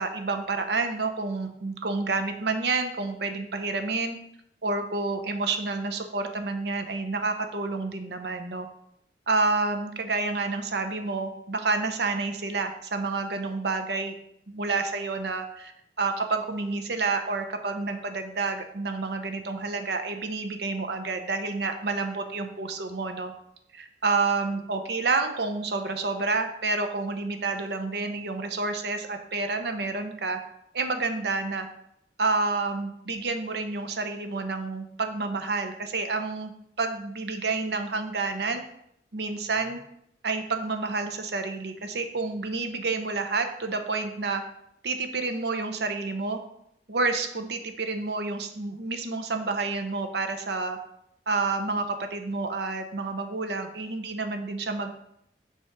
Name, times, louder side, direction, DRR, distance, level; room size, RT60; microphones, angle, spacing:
voice 1, 0.0-4.2 4.6-8.7 9.3-14.1 14.5-15.7 16.0-23.3 23.7-30.4 30.7-31.7 32.2-36.5 36.8-38.6 39.1-39.8 40.2-44.4 44.8-46.4 46.9-50.8 51.3-54.9, right 3 dB, 70° right, 7 dB, 0.7 m, -29 dB
5.7 x 3.5 x 5.8 m, 0.74 s
head